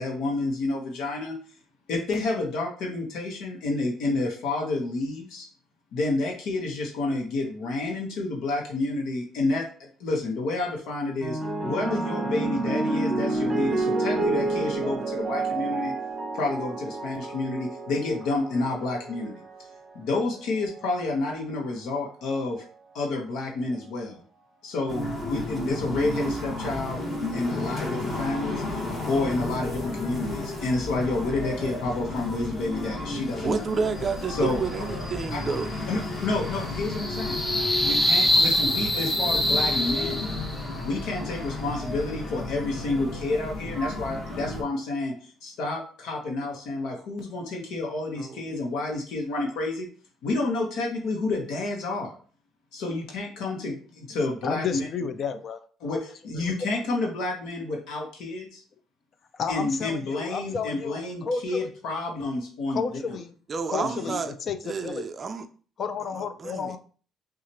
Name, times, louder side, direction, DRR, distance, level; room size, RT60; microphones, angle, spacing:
voice 1, 0.0-1.4 1.9-5.5 5.9-15.9 16.3-19.3 19.9-22.6 22.9-24.2 24.6-27.0 27.3-33.6 34.3-34.9 35.3-35.4 35.9-37.4 37.8-40.3 40.8-49.9 50.2-52.1 52.7-54.9 55.8-58.6 59.5-63.2 63.8-63.9, left 2 dB, 80° left, 1.0 m, -29 dB
sound 1, 11.2-19.8 20.7-21.1, right 2 dB, 5° right, 1.3 m, -29 dB
sound 2, 24.9-44.6, left 2 dB, 25° left, 1.5 m, -33 dB
voice 2, 33.4-35.7 48.2-48.5 63.5-64.3 64.6-65.5 66.1-66.8, right 5 dB, 30° right, 0.4 m, -30 dB
sound 3, 34.7-40.7, left 1 dB, 10° left, 0.7 m, -26 dB
voice 3, 54.4-55.6 56.4-56.5 59.4-61.7 62.7-63.3 63.7-64.2 64.5-65.0 65.8-66.8, left 5 dB, 40° left, 0.4 m, -31 dB
6.0 x 2.4 x 2.9 m
cardioid pair, 145°, 0 cm